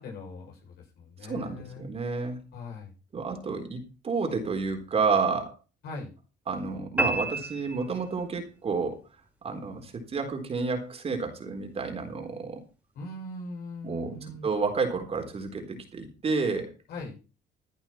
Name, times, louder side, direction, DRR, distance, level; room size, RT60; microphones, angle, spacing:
voice 1, 0.0-1.9 2.5-2.9 5.8-6.1 12.9-14.5 16.9-17.2, left 2 dB, 70° left, -1 dB, 7.8 m, -40 dB
voice 2, 1.2-2.4 3.1-5.5 6.5-9.0 9.4-12.6 13.8-16.7, right 4 dB, 35° right, 3 dB, 4.1 m, -30 dB
sound 1, 7.0-8.5, right 1 dB, 5° right, 3.3 m, -30 dB
15.0 x 10.5 x 4.5 m, 0.33 s
cardioid pair, 110°, 17 cm